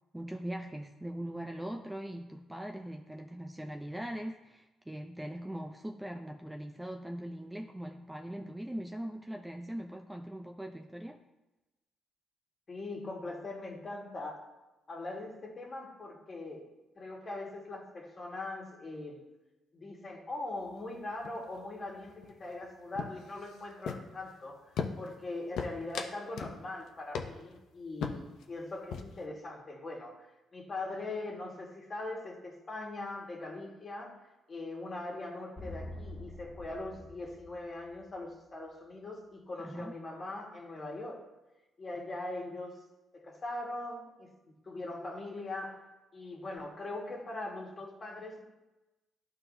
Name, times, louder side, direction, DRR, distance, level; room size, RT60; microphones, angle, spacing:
voice 1, 0.1-11.2 39.6-39.9, right 1 dB, 10° right, 3 dB, 0.4 m, -41 dB
voice 2, 12.7-14.4 14.9-16.7 16.9-19.2 19.7-24.7 25.0-34.2 34.5-41.3 41.8-42.8 43.1-44.3 44.6-45.8 46.1-48.4, left 2 dB, 35° left, -2 dB, 1.7 m, -41 dB
sound 1, 20.6-21.0 21.2-21.6 21.9-22.6 22.9-24.3 24.8-25.2 25.6-26.6 26.9-27.0 27.1-27.6 28.0-28.4 28.7-29.2, left 6 dB, 75° left, 0.6 m, -38 dB
sound 2, 35.6-38.2, left 1 dB, 10° left, 1.9 m, -46 dB
11.5 x 3.9 x 2.7 m, 1.1 s
cardioid pair, 90°, 0 cm